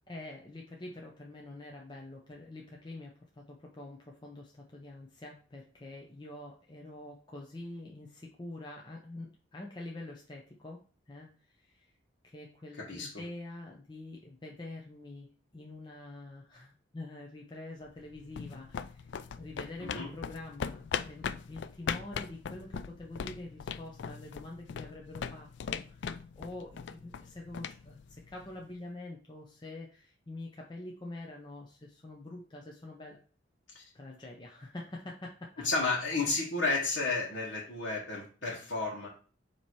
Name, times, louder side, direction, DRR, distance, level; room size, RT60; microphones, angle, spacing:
voice 1, 0.1-11.9 12.2-33.2 33.9-35.7, left 2 dB, 25° left, -1 dB, 0.7 m, -46 dB
voice 2, 12.8-13.1 19.8-20.1 33.7-33.8 35.6-39.1, left 3 dB, 85° left, -5 dB, 1.4 m, -32 dB
sound 1, 17.9-28.7, left 7 dB, 70° left, 0.3 m, -40 dB
7.0 x 3.0 x 4.6 m, 0.41 s
head